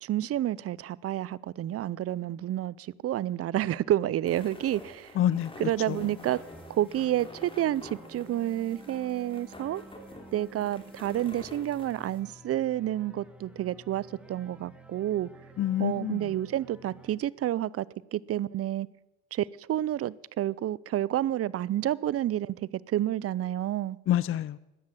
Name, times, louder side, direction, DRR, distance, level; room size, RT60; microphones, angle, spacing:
voice 1, 0.0-5.1 5.6-6.4 6.7-9.8 10.3-15.3 15.8-17.9 18.1-18.9 19.3-24.0, right 13 dB, 50° right, 0.5 m, -29 dB
sound 1, 4.2-12.2, left 1 dB, 15° left, 3.2 m, -48 dB
voice 2, 5.2-5.5 5.9-6.1 15.6-16.3 24.1-24.6, left 11 dB, 45° left, 0.4 m, -27 dB
sound 2, 5.3-17.1, right 1 dB, 5° right, 2.0 m, -52 dB
14.0 x 9.9 x 7.3 m
cardioid pair, 90°, 30 cm